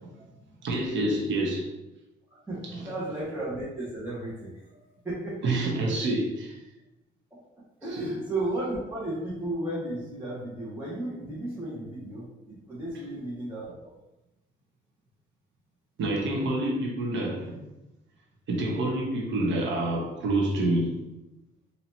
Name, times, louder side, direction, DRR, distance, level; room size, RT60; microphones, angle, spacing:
voice 1, 0.6-1.7 5.4-6.6 8.0-8.1 16.0-17.6 18.5-21.0, right 1 dB, 70° right, 0 dB, 1.0 m, -27 dB
voice 2, 2.3-6.0 7.8-13.9, right 1 dB, 10° right, -10 dB, 1.4 m, -34 dB
4.2 x 2.9 x 2.8 m, 0.94 s
cardioid pair, 90°, 20 cm